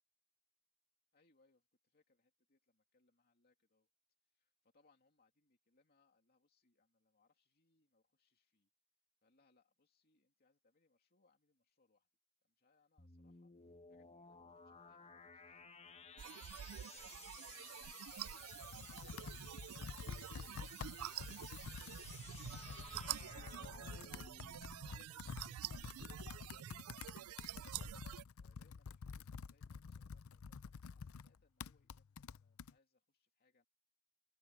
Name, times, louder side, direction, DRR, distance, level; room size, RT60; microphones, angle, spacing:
voice 1, 1.1-3.9 4.2-8.7 9.2-12.1 12.4-13.5 13.9-15.8 16.2-20.7 21.1-24.2 24.6-27.9 28.4-33.7, left 3 dB, 45° left, 2.6 m, -77 dB
sound 1, 13.0-24.9, left 6 dB, 30° left, 1.1 m, -58 dB
sound 2, 16.2-28.2, right 12 dB, 80° right, 0.4 m, -48 dB
Computer keyboard, 18.1-32.7, left 5 dB, 75° left, 0.5 m, -50 dB
head